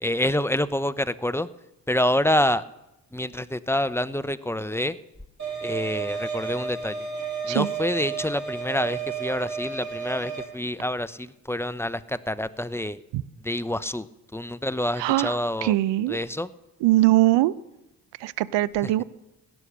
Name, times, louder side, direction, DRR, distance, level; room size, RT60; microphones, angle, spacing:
voice 1, 0.0-1.5 1.9-2.6 3.1-5.0 5.6-7.1 7.4-13.0 13.4-14.1 14.3-15.8 16.1-16.5 18.8-18.9, left 1 dB, 5° left, 14 dB, 0.7 m, -27 dB
sound 1, 5.4-10.4, right 6 dB, 35° right, 6.2 m, -32 dB
voice 2, 15.0-15.3 15.6-16.2 16.8-17.5 18.2-19.0, right 16 dB, 65° right, 19 dB, 0.8 m, -21 dB
17.0 x 10.5 x 6.8 m, 0.95 s
hypercardioid pair, 45°, 47 cm